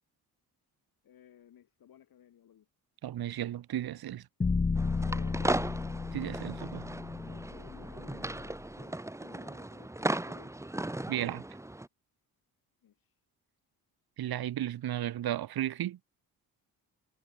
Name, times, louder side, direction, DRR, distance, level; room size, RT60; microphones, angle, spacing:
voice 1, 1.0-2.7 4.9-5.9 7.2-10.5 12.8-13.1, left 10 dB, 70° left, 6.7 m, -56 dB
voice 2, 3.0-4.3 6.1-6.9 11.1-11.4 14.2-16.0, right 12 dB, 75° right, 2.5 m, -34 dB
sound 1, 4.4-8.6, left 4 dB, 20° left, 0.8 m, -33 dB
sound 2, 4.8-11.9, right 1 dB, 10° right, 1.8 m, -36 dB
cardioid pair, 115°, 37 cm